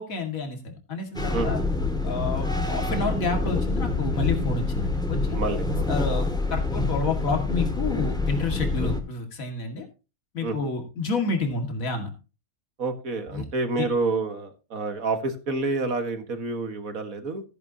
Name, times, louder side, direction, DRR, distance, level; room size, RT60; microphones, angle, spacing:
voice 1, 0.0-1.6 2.0-5.4 5.9-9.8 10.3-12.1 13.3-13.4 13.8-13.9, left 3 dB, 70° left, 4 dB, 2.6 m, -29 dB
sound 1, 1.1-9.0, left 3 dB, 5° left, 2.0 m, -26 dB
voice 2, 5.3-5.9 8.8-8.9 10.4-10.6 12.8-17.4, right 3 dB, 70° right, 7 dB, 2.1 m, -28 dB
14.0 x 10.5 x 2.9 m, 0.30 s
omnidirectional pair, 1.5 m